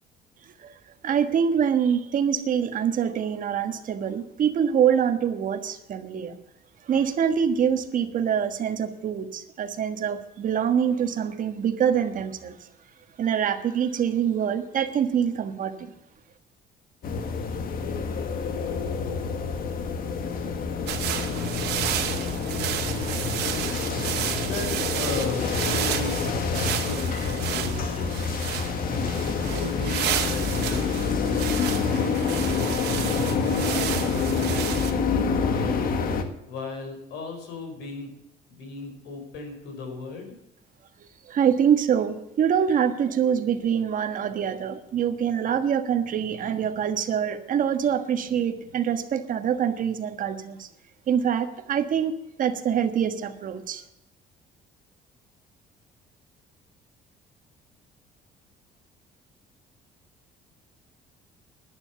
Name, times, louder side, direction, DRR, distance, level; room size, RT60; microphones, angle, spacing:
voice 1, 1.0-6.3 6.8-12.7 13.2-15.9 41.3-50.7 51.1-53.8, right 8 dB, 50° right, 8 dB, 1.4 m, -25 dB
sound 1, 17.0-36.2, left 5 dB, 60° left, 1.7 m, -27 dB
sound 2, 20.9-34.9, right 10 dB, 80° right, 2.1 m, -32 dB
voice 2, 24.4-28.1 29.4-35.3 36.5-38.1 38.5-40.3, left 3 dB, 85° left, 4 dB, 4.9 m, -37 dB
11.0 x 10.5 x 6.9 m, 0.84 s
cardioid pair, 110°, 17 cm